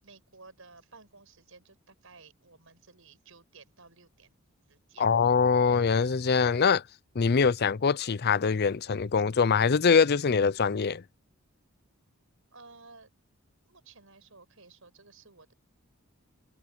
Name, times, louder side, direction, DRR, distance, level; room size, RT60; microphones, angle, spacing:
voice 1, 0.0-4.3 4.7-5.2 12.5-13.1 13.6-15.5, right 4 dB, 70° right, 7.5 m, -54 dB
voice 2, 5.0-6.8 7.2-11.0, left 5 dB, 50° left, 0.5 m, -23 dB
head